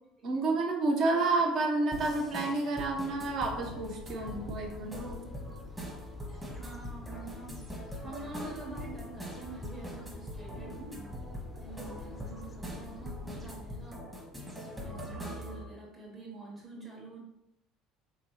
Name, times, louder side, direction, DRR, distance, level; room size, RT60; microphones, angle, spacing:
voice 1, 0.2-5.3, right 3 dB, 50° right, 1 dB, 0.9 m, -30 dB
sound 1, 1.9-15.6, equal, 10° right, 1.1 m, -43 dB
sound 2, 3.2-14.0, left 3 dB, 25° left, 0.4 m, -47 dB
voice 2, 6.5-7.8 8.0-11.1 11.5-14.1 14.8-17.2, right 2 dB, 30° right, -5 dB, 1.3 m, -46 dB
3.6 x 2.9 x 3.0 m, 0.84 s
figure-of-eight pair, 65°, 0 cm